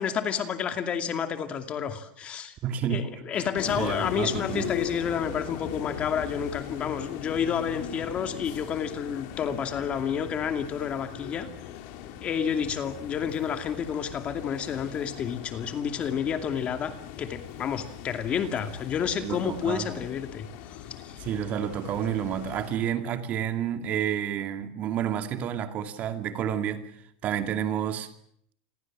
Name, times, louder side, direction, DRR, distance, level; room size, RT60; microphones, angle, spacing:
voice 1, 0.0-2.6 2.9-11.5 12.2-21.2, left 7 dB, 25° left, 7 dB, 2.5 m, -30 dB
voice 2, 2.6-3.1 3.8-4.7 19.2-19.9 21.2-28.1, right 9 dB, 35° right, 7 dB, 2.5 m, -30 dB
sound 1, 3.6-22.8, left 10 dB, 50° left, 3.5 m, -39 dB
28.5 x 22.0 x 7.5 m, 0.68 s
supercardioid pair, 150°, 5 cm